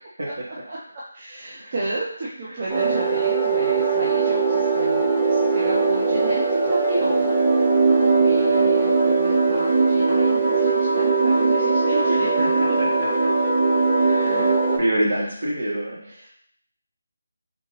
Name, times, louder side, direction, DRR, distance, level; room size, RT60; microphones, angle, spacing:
voice 1, 1.1-7.6 7.9-12.4 16.1-16.3, right 2 dB, 40° right, -6 dB, 0.8 m, -32 dB
sound 1, 2.7-14.8, right 4 dB, 5° right, 0.9 m, -20 dB
voice 2, 12.1-12.5 12.8-12.9 14.0-16.0, right 1 dB, 60° right, -4 dB, 1.8 m, -26 dB
3.9 x 3.6 x 3.2 m, 0.66 s
figure-of-eight pair, 165°, 0 cm